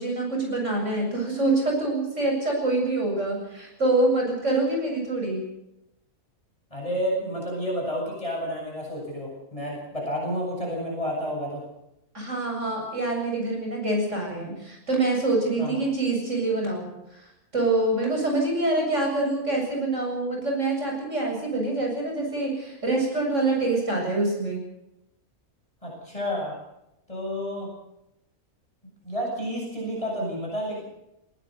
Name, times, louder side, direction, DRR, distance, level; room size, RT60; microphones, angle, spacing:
voice 1, 0.0-5.4 12.1-17.2 17.5-24.6, right 2 dB, 55° right, 0 dB, 8.0 m, -25 dB
voice 2, 6.7-11.6 15.6-15.8 25.8-26.6 27.1-27.7 29.0-30.8, equal, 25° left, -3 dB, 8.2 m, -30 dB
20.5 x 19.0 x 6.7 m, 0.86 s
omnidirectional pair, 1.5 m